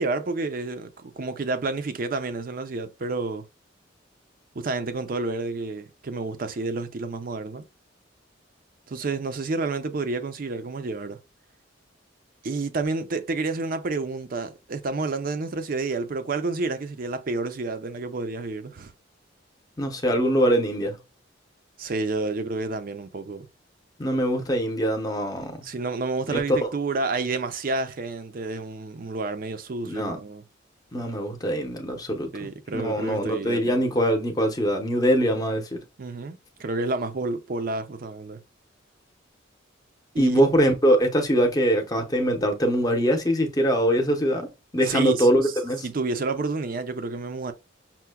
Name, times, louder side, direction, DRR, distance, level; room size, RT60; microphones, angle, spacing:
voice 1, 0.0-3.4 4.5-7.6 8.9-11.2 12.4-18.9 21.8-23.5 25.6-30.4 32.3-33.9 36.0-38.4 40.1-40.4 44.8-45.3 45.8-47.5, right 3 dB, 50° right, 0.5 m, -29 dB
voice 2, 19.8-21.0 24.0-25.7 26.3-26.7 29.8-30.2 30.9-35.8 40.2-45.9, equal, 20° left, 0.7 m, -23 dB
5.7 x 2.1 x 2.2 m
head